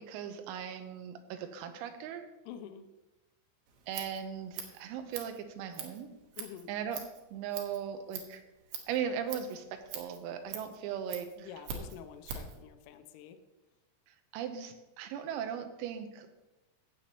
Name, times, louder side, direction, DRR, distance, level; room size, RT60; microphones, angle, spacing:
voice 1, 0.0-2.3 3.9-6.1 6.7-7.0 7.3-8.4 8.9-11.5 14.1-16.3, right 8 dB, 85° right, 7 dB, 3.5 m, -38 dB
voice 2, 2.5-2.9 6.4-6.7 11.4-13.4, left 9 dB, 80° left, 8 dB, 3.0 m, -47 dB
Scissors, 3.7-12.6, right 6 dB, 70° right, 2.6 m, -45 dB
15.0 x 8.2 x 3.0 m, 1.0 s
omnidirectional pair, 6.0 m